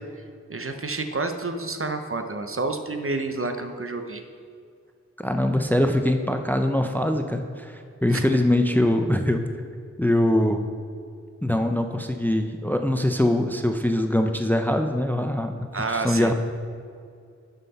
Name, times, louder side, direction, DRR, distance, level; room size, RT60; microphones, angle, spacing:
voice 1, 0.5-4.2 8.1-8.2 15.7-16.3, right 3 dB, 50° right, 6 dB, 0.7 m, -29 dB
voice 2, 5.2-9.4 10.0-10.6 11.4-15.5 15.9-16.3, left 1 dB, 5° left, 6 dB, 0.5 m, -23 dB
11.0 x 5.8 x 4.1 m, 2.2 s
wide cardioid pair, 45°, 29 cm